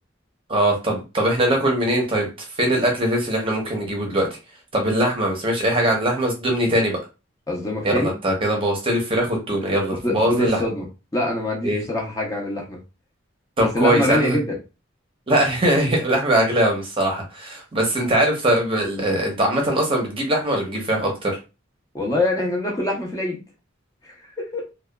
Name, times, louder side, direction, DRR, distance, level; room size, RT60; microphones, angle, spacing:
voice 1, 0.5-2.3 2.6-4.3 4.7-7.0 7.8-10.6 11.6-11.8 13.6-14.4 15.3-21.4, right 1 dB, 25° right, 1 dB, 0.7 m, -21 dB
voice 2, 7.5-8.2 10.0-10.8 11.1-12.8 13.6-14.6 21.9-23.4 24.4-24.6, left 1 dB, 15° left, -2 dB, 0.5 m, -24 dB
2.7 x 2.2 x 2.2 m, 0.29 s
head